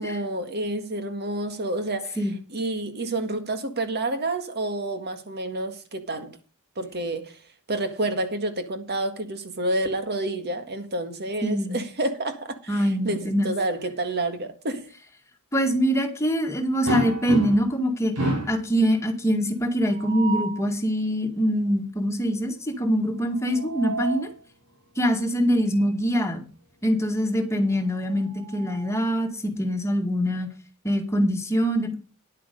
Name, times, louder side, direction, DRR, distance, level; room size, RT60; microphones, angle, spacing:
voice 1, 0.0-6.4 6.8-7.4 7.7-14.9, right 2 dB, 50° right, 1.7 m, -29 dB
voice 2, 11.4-11.8 12.7-13.5 15.5-18.1 18.5-24.3 25.0-26.4 26.8-30.5 30.8-32.0, equal, 15° left, 1.8 m, -24 dB
sound 1, 16.9-17.8 18.2-18.6 19.9-20.6 23.3-24.3 25.7-25.9 26.3-26.4 27.9-29.2, right 1 dB, 75° right, 6.1 m, -30 dB
10.5 x 8.5 x 5.2 m
head